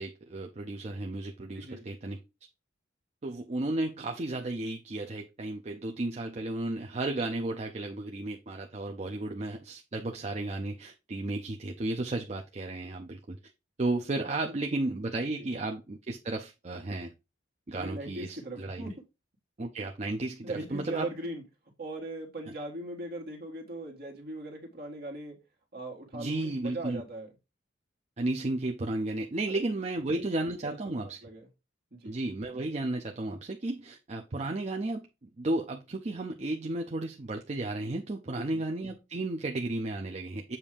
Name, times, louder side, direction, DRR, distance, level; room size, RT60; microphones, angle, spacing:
voice 1, 0.0-2.2 3.2-13.4 13.8-17.1 17.7-18.9 19.6-20.4 20.7-21.1 26.1-27.0 28.2-31.2 32.0-40.6, right 2 dB, 35° right, 0.5 m, -33 dB
voice 2, 1.5-1.9 14.2-14.5 17.7-18.9 20.4-21.4 21.8-25.4 25.7-27.3 29.5-29.6 30.1-30.3 30.6-31.5 31.9-32.1 38.3-38.6, right 2 dB, 55° right, 1.6 m, -40 dB
7.2 x 2.7 x 4.9 m
head